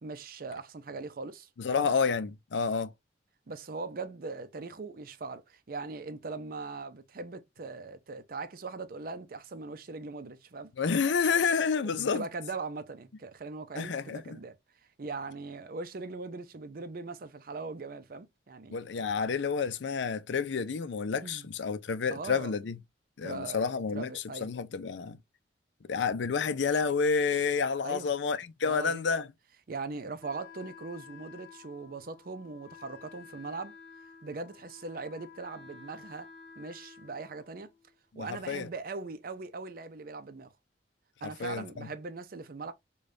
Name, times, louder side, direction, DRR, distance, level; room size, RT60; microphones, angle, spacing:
voice 1, 0.0-1.9 3.5-10.7 11.8-14.6 15.0-18.8 21.2-21.5 22.1-22.5 23.2-24.5 27.8-28.1 28.6-29.1 29.7-33.8 34.2-36.3 36.6-37.7 38.1-40.5 41.2-42.7, right 3 dB, 55° right, 0.5 m, -40 dB
voice 2, 1.6-2.9 10.8-12.3 13.7-14.4 18.7-22.8 23.2-25.2 25.9-29.3 38.1-38.7 41.2-41.9, left 5 dB, 90° left, 0.5 m, -29 dB
Wind instrument woodwind instrument, 30.2-37.9, left 6 dB, 40° left, 1.5 m, -52 dB
5.0 x 2.3 x 2.6 m
head